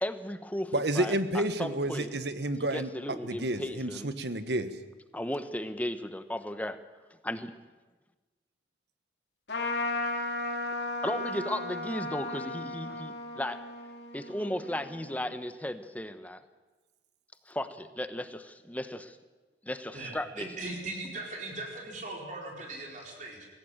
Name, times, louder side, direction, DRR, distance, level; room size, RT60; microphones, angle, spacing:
voice 1, 0.0-2.1 2.7-4.1 5.1-6.8 7.2-7.5 11.0-13.6 14.1-16.4 17.5-19.2 19.6-20.5, left 1 dB, 10° left, 11 dB, 1.0 m, -35 dB
voice 2, 0.7-2.9 3.2-4.7, right 1 dB, 65° right, 11 dB, 1.4 m, -30 dB
Trumpet, 9.5-15.3, left 2 dB, 65° left, 2.9 m, -35 dB
voice 3, 19.9-23.5, right 2 dB, 45° right, 0 dB, 4.3 m, -39 dB
21.5 x 17.0 x 8.9 m, 1.2 s
head